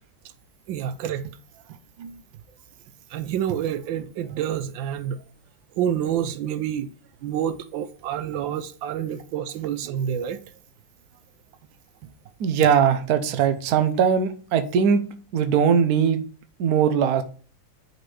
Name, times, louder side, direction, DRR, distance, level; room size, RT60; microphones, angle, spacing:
voice 1, 0.7-1.3 1.7-2.2 3.1-5.2 5.8-6.9 7.2-10.4, right 9 dB, 85° right, 1.4 m, -28 dB
voice 2, 12.4-15.0 15.3-16.2 16.6-17.2, right 7 dB, 60° right, 1.2 m, -20 dB
9.1 x 4.5 x 3.3 m
omnidirectional pair, 2.0 m